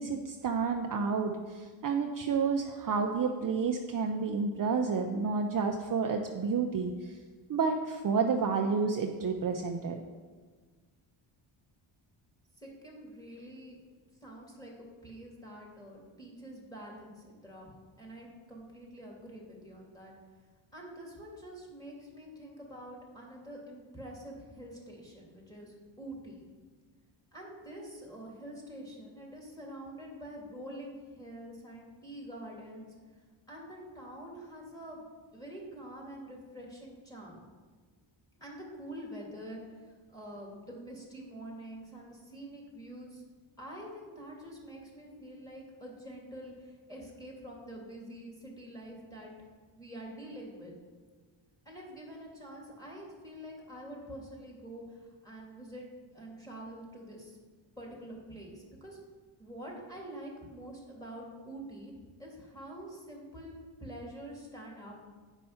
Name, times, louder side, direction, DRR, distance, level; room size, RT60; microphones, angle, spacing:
voice 1, 0.0-7.2 7.5-10.0, right 5 dB, 40° right, 3 dB, 0.6 m, -30 dB
voice 2, 12.6-13.8 14.2-17.7 18.0-20.1 20.7-26.5 27.3-32.9 33.5-35.1 35.3-37.4 38.4-43.2 43.6-49.3 49.8-50.7 51.6-55.9 56.1-57.4 57.8-59.0 59.4-61.9 62.2-63.5 63.8-64.9, right 1 dB, 5° left, -3 dB, 2.6 m, -46 dB
9.1 x 5.5 x 5.6 m, 1.5 s
cardioid pair, 105°, 50 cm